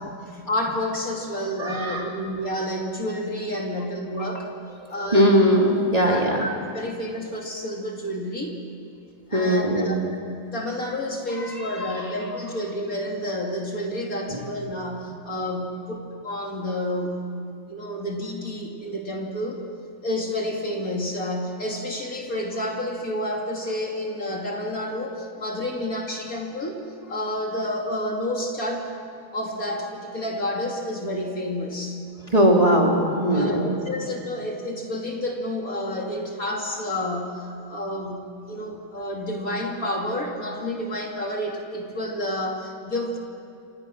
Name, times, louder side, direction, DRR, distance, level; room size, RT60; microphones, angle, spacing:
voice 1, 0.0-4.5 4.9-5.4 6.0-6.2 6.7-8.6 9.3-10.2 10.5-17.3 17.7-19.6 20.0-26.8 27.1-28.9 29.3-32.0 33.3-43.2, left 1 dB, 45° left, 0 dB, 2.9 m, -30 dB
voice 2, 1.6-2.1 5.1-6.5 9.3-10.0 11.3-12.0 14.3-14.4 32.3-33.7, equal, 20° right, -1 dB, 3.0 m, -20 dB
28.5 x 27.0 x 6.3 m, 2.5 s
omnidirectional pair, 2.2 m